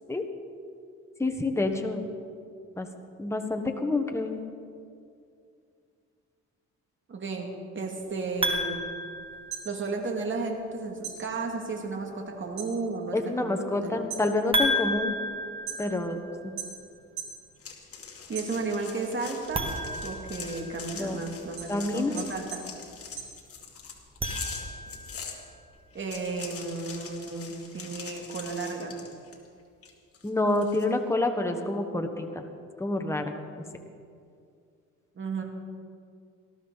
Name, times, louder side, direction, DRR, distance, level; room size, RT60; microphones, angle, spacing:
voice 1, 1.2-2.1 2.8-2.9 3.2-4.4 13.1-15.1 15.8-16.2 16.4-16.5 20.9-21.2 21.7-22.2 30.2-32.4 32.8-33.3, left 2 dB, 10° left, 4 dB, 1.3 m, -28 dB
voice 2, 7.1-8.8 9.6-13.9 18.3-19.7 20.0-22.6 25.9-28.9 35.2-35.4, right 3 dB, 40° right, 2 dB, 2.4 m, -33 dB
sound 1, 8.4-10.1 14.5-16.6 19.4-21.1 24.0-25.2, equal, 20° right, 1.8 m, -32 dB
sound 2, 9.3-10.7 11.0-12.8 13.1-13.6 14.0-16.1 16.6-17.4 17.8-19.0 19.4-24.0, right 7 dB, 65° right, 3.6 m, -41 dB
sound 3, 17.6-25.4 25.9-29.5 29.8-30.8, left 6 dB, 50° left, 2.1 m, -43 dB
19.0 x 13.5 x 4.1 m, 2.4 s
cardioid pair, 90°, 30 cm